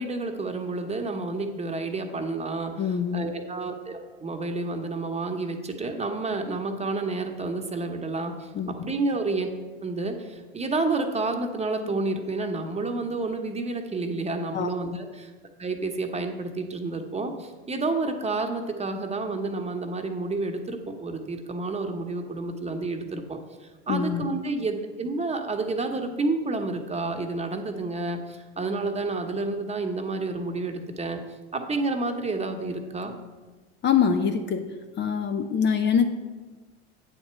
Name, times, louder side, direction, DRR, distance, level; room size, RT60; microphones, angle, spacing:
voice 1, 0.0-9.5 9.8-15.3 15.6-23.4 23.9-31.2 31.5-33.1, right 3 dB, 20° right, 4 dB, 1.1 m, -30 dB
voice 2, 2.8-3.3 8.5-8.9 14.5-14.7 23.9-24.2 33.8-34.7 35.0-36.1, left 7 dB, 35° left, 8 dB, 0.7 m, -24 dB
8.9 x 4.3 x 7.0 m, 1.3 s
hypercardioid pair, 85°, 32 cm